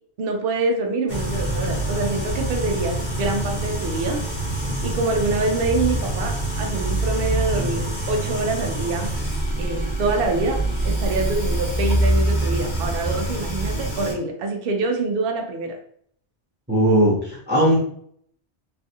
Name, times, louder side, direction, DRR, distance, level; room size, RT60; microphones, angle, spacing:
voice 1, 0.2-4.2 4.8-9.1 9.6-10.6 10.8-15.8, right 3 dB, 60° right, 3 dB, 0.7 m, -25 dB
sound 1, 1.1-14.1, right 1 dB, 45° left, 1.1 m, -25 dB
voice 2, 16.7-17.8, right 1 dB, 10° right, -6 dB, 0.7 m, -18 dB
3.3 x 2.3 x 2.7 m, 0.63 s
omnidirectional pair, 1.2 m